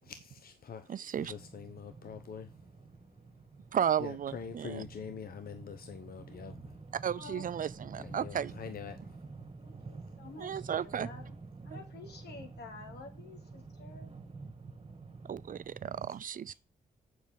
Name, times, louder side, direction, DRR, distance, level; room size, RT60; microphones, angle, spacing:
voice 1, 0.0-2.6 4.0-6.5 8.0-9.2, left 7 dB, 60° left, 0.9 m, -45 dB
voice 2, 0.9-1.3 3.7-4.8 6.9-8.5 10.4-11.1 11.7-11.8 15.2-16.5, right 9 dB, 50° right, 0.5 m, -34 dB
sound 1, 1.2-16.0, right 4 dB, 35° right, 1.8 m, -49 dB
voice 3, 7.1-7.5 9.6-11.3 11.6-14.1, left 4 dB, 75° left, 2.4 m, -50 dB
7.4 x 6.3 x 5.2 m
cardioid pair, 65°, 17 cm